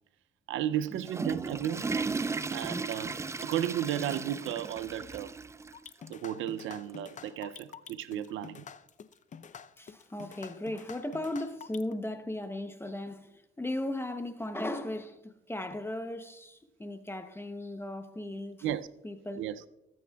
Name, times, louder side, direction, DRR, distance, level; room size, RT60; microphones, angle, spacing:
voice 1, 0.5-1.9 2.5-3.1 3.4-5.3 6.1-8.6 18.6-18.9 19.4-19.6, right 11 dB, 80° right, 0.5 m, -34 dB
Water / Toilet flush, 0.8-5.8 6.1-6.2 6.9-7.0 8.3-8.4, right 4 dB, 15° right, 0.3 m, -36 dB
sound 1, 5.7-11.9, left 7 dB, 40° left, 0.5 m, -47 dB
voice 2, 9.8-18.6 19.0-19.4, left 1 dB, 10° left, 0.7 m, -37 dB
19.0 x 8.6 x 2.3 m
cardioid pair, 90°, 20 cm